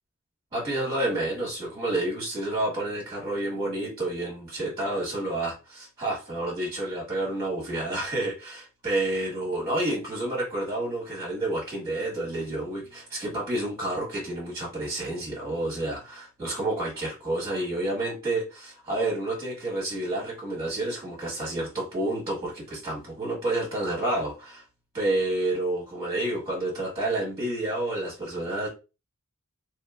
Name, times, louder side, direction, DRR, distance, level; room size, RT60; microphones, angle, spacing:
voice 1, 0.5-24.6 24.9-28.7, right 1 dB, 20° right, -6 dB, 1.4 m, -29 dB
3.0 x 2.8 x 2.3 m, 0.29 s
head